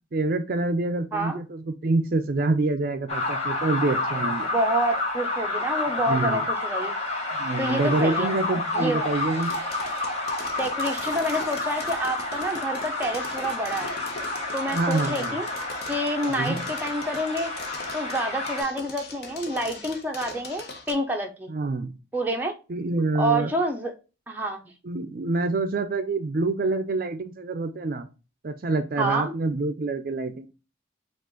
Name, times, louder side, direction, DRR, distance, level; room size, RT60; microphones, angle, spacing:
voice 1, 0.1-4.5 6.1-6.5 7.4-9.5 14.7-15.4 16.4-16.7 21.5-21.9 22.7-23.5 24.8-28.1 28.4-30.5, right 3 dB, 50° right, 9 dB, 0.4 m, -26 dB
sound 1, 3.1-18.6, left 2 dB, 35° left, 1.1 m, -30 dB
voice 2, 4.5-6.9 7.6-8.3 8.7-9.0 10.5-13.9 14.5-15.4 15.9-17.5 17.9-21.5 22.1-22.5 23.1-23.9 24.3-24.6 29.0-29.3, right 1 dB, 10° right, 1 dB, 0.6 m, -28 dB
sound 2, 9.4-20.9, left 3 dB, 55° left, 0.8 m, -41 dB
4.9 x 2.4 x 3.8 m, 0.31 s
head